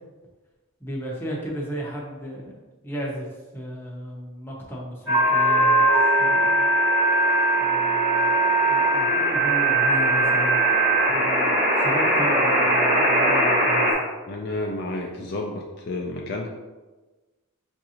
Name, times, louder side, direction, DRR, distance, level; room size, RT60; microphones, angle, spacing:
voice 1, 0.8-2.5 2.8-3.2 3.5-5.9 6.2-6.7 7.6-10.6 11.1-14.1, equal, 10° left, -3 dB, 0.7 m, -34 dB
sound 1, 5.1-13.9, right 1 dB, 15° right, 1.1 m, -20 dB
voice 2, 14.3-16.5, left 2 dB, 45° left, 0 dB, 0.4 m, -31 dB
5.8 x 2.6 x 2.8 m, 1.2 s
head